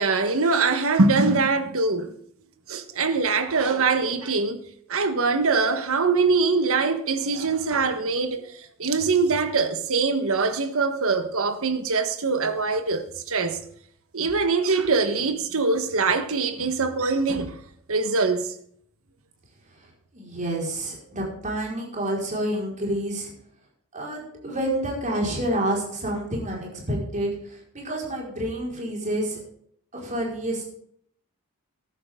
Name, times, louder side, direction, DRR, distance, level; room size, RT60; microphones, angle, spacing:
voice 1, 0.0-2.1 2.7-4.6 4.9-8.5 8.8-13.6 14.1-17.6 17.9-18.5, right 4 dB, 65° right, 1.4 m, -23 dB
voice 2, 20.1-23.3 23.9-29.4 29.9-30.6, right 1 dB, 35° right, 5.0 m, -28 dB
14.5 x 11.5 x 3.8 m
head